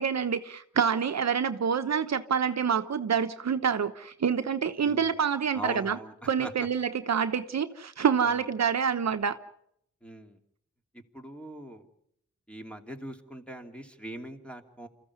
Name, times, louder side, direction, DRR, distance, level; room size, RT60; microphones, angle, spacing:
voice 1, 0.0-6.0 6.3-9.4, right 7 dB, 65° right, 9 dB, 1.1 m, -27 dB
voice 2, 4.8-5.1 5.5-6.1 6.4-6.7 8.2-8.4 10.0-10.4 11.1-11.9 12.5-14.9, right 1 dB, 5° left, 4 dB, 2.7 m, -41 dB
27.0 x 14.5 x 9.6 m, 0.74 s
wide cardioid pair, 85°, 29 cm